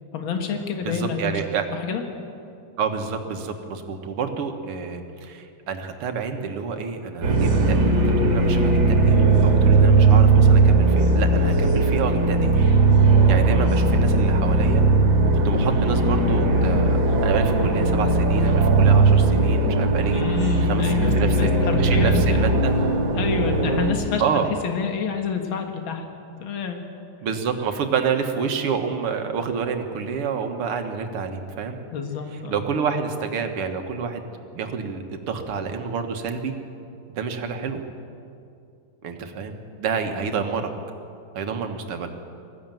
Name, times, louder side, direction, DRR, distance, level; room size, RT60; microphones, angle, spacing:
voice 1, 0.1-1.3 1.7-2.0 20.1-22.4 23.2-24.2 24.6-26.0 26.4-26.8 31.9-32.6, left 6 dB, 65° left, 4 dB, 2.4 m, -28 dB
voice 2, 0.8-1.7 2.8-9.2 9.4-12.5 13.3-14.9 15.4-20.2 20.7-21.5 21.8-22.8 24.2-24.5 27.2-31.8 32.5-34.2 34.5-36.6 37.1-37.8 39.0-40.7 41.3-42.1, right 6 dB, 85° right, 5 dB, 2.3 m, -28 dB
sound 1, 7.2-23.9, right 3 dB, 60° right, 2.7 m, -18 dB
20.0 x 14.5 x 9.1 m, 2.6 s
omnidirectional pair, 2.4 m